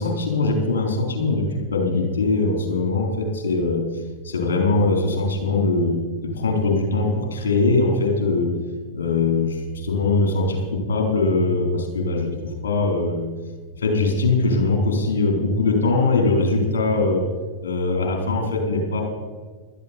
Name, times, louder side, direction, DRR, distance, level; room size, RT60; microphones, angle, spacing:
voice 1, 0.0-3.8 4.2-6.0 6.2-8.6 8.9-12.3 12.6-13.3 13.8-17.3 17.6-19.0, left 3 dB, 65° left, 1 dB, 4.2 m, -21 dB
17.0 x 13.0 x 4.5 m, 1.5 s
figure-of-eight pair, 90°, 0 cm